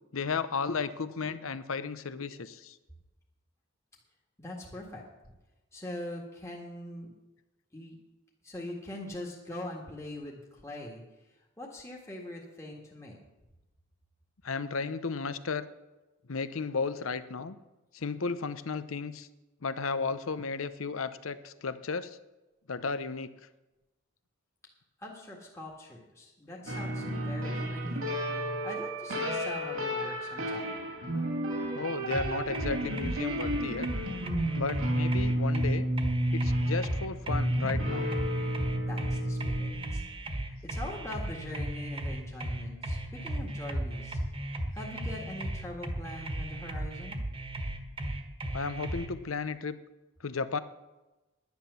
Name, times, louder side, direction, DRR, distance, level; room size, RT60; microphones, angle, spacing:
voice 1, 0.1-2.8 14.4-15.6 16.3-17.6 17.9-19.3 19.6-22.2 22.7-23.3 31.7-33.9 34.5-35.9 36.3-38.1 48.5-49.8 50.2-50.6, left 4 dB, 75° left, 13 dB, 0.8 m, -34 dB
voice 2, 4.4-5.0 5.7-7.1 7.7-8.0 8.4-11.0 11.6-13.2 25.0-28.1 28.6-30.7 38.9-40.0 40.5-44.2 44.7-47.2, left 1 dB, 15° left, -2 dB, 1.7 m, -42 dB
sound 1, 26.7-39.7, right 1 dB, 85° right, 2.7 m, -31 dB
sound 2, 32.1-49.1, right 1 dB, 25° right, 1.4 m, -36 dB
10.5 x 10.5 x 6.9 m, 1.0 s
head